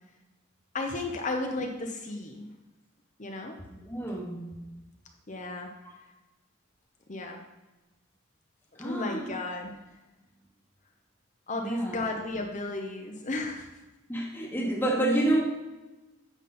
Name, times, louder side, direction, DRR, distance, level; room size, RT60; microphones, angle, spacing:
voice 1, 0.7-2.5 3.2-3.5 5.3-5.7 7.1-7.4 8.8-9.7 11.5-13.7, left 2 dB, 35° left, 3 dB, 0.8 m, -33 dB
voice 2, 3.7-4.5 5.8-5.9 8.8-9.4 11.6-12.0 14.1-15.4, right 1 dB, 10° left, -2 dB, 1.2 m, -29 dB
9.3 x 7.0 x 4.3 m, 1.1 s
head